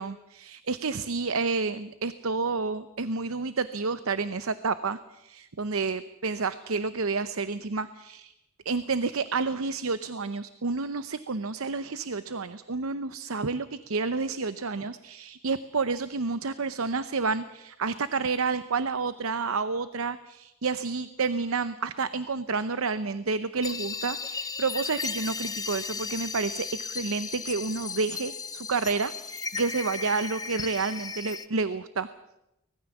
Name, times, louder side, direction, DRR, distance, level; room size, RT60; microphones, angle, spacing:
voice 1, 0.0-8.3 8.6-32.1, right 4 dB, 65° right, 13 dB, 0.8 m, -30 dB
sound 1, 23.6-31.5, left 5 dB, 15° left, 0.8 m, -35 dB
24.0 x 20.0 x 7.2 m, 0.89 s
head